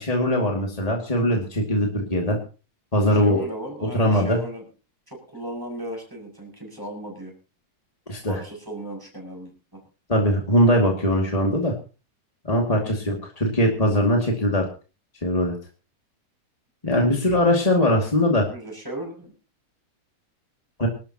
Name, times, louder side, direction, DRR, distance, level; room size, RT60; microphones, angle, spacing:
voice 1, 0.0-2.4 2.9-3.4 3.8-4.4 8.1-8.4 10.1-11.7 12.5-14.6 15.2-15.5 16.8-18.5 20.8-20.9, equal, 15° left, 0 dB, 1.7 m, -21 dB
voice 2, 3.1-4.7 5.1-7.3 8.3-9.8 12.7-13.0 18.3-19.3, right 1 dB, 5° right, 0 dB, 6.4 m, -36 dB
25.5 x 12.5 x 2.9 m, 0.34 s
omnidirectional pair, 3.8 m